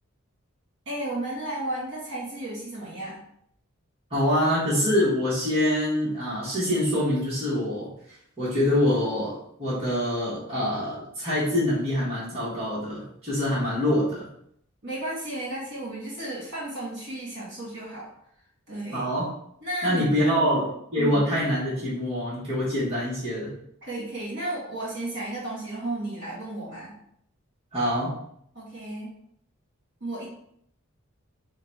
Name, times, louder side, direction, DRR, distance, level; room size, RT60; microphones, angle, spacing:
voice 1, 0.8-3.2 14.8-18.1 18.7-19.1 19.6-21.2 23.8-26.9 28.5-29.1 30.0-30.3, right 1 dB, 55° right, -5 dB, 1.6 m, -33 dB
voice 2, 4.1-7.9 8.4-14.3 18.9-19.3 19.8-20.7 20.9-23.5 27.7-28.1, left 1 dB, 30° right, -9 dB, 1.2 m, -25 dB
3.8 x 2.3 x 4.1 m, 0.71 s
head